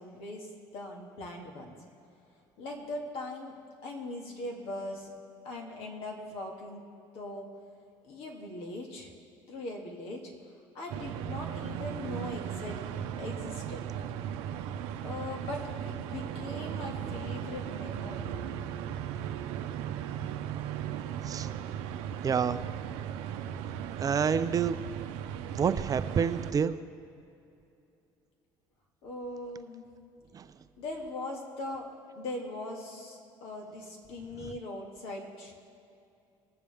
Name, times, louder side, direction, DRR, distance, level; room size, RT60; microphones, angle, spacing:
voice 1, 0.0-1.7 2.6-3.5 3.8-5.1 5.4-6.8 7.1-7.5 8.0-9.1 9.5-10.3 10.7-12.8 13.2-13.9 15.0-18.3 29.0-29.9 30.8-31.9 32.2-35.5, left 2 dB, 75° left, 0 dB, 2.1 m, -40 dB
sound 1, 10.9-26.5, right 9 dB, 80° right, 0.7 m, -37 dB
voice 2, 22.2-22.6 24.0-24.8 25.5-26.7 30.3-30.4, right 7 dB, 35° right, 11 dB, 0.6 m, -28 dB
20.0 x 7.0 x 3.5 m, 2.6 s
supercardioid pair, 95°, 10 cm